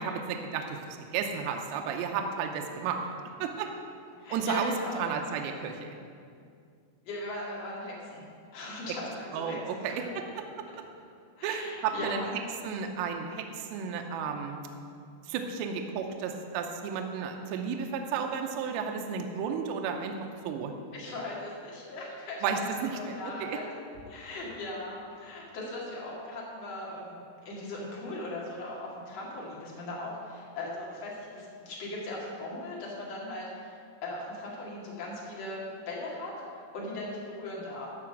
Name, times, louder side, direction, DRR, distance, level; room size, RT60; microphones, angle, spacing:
voice 1, 0.0-3.1 3.4-3.7 4.3-6.0 8.9-9.0 9.3-10.1 11.4-12.3 12.6-14.6 15.3-20.1 20.4-20.7 22.4-23.6, right 6 dB, 80° right, 4 dB, 2.7 m, -33 dB
voice 2, 4.2-5.1 7.0-8.2 8.5-9.6 9.8-10.1 11.4-12.3 20.9-22.6 22.9-23.7 24.1-27.2 27.4-33.7 34.0-36.3 36.7-37.9, left 2 dB, 45° left, -5 dB, 2.3 m, -39 dB
12.5 x 5.1 x 7.3 m, 2.3 s
omnidirectional pair, 5.6 m